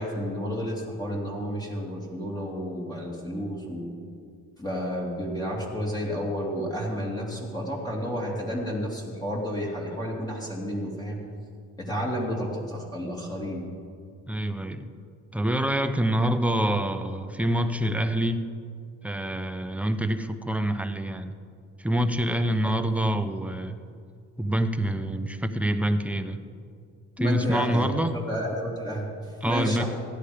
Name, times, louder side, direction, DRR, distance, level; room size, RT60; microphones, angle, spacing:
voice 1, 0.0-3.9 4.6-11.2 11.8-13.6 22.6-22.7 27.2-29.9, equal, 15° left, -3 dB, 2.8 m, -31 dB
voice 2, 14.3-14.9 15.3-18.5 19.0-21.3 21.8-23.8 24.4-26.4 27.2-28.1 29.4-29.8, right 1 dB, 5° right, 8 dB, 0.8 m, -26 dB
16.0 x 10.5 x 5.1 m, 2.3 s
cardioid pair, 90°, 30 cm